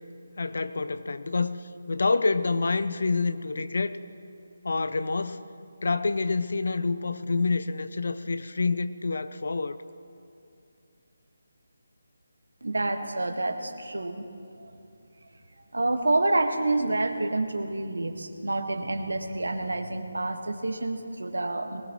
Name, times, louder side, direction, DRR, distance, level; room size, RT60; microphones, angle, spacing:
voice 1, 0.4-4.0 4.6-5.5 5.8-9.8, left 3 dB, 60° left, 12 dB, 0.7 m, -27 dB
voice 2, 12.6-14.3 14.6-14.7 15.7-21.8, right 2 dB, 75° right, 6 dB, 1.4 m, -28 dB
21.0 x 19.5 x 3.0 m, 2.5 s
figure-of-eight pair, 155°, 0 cm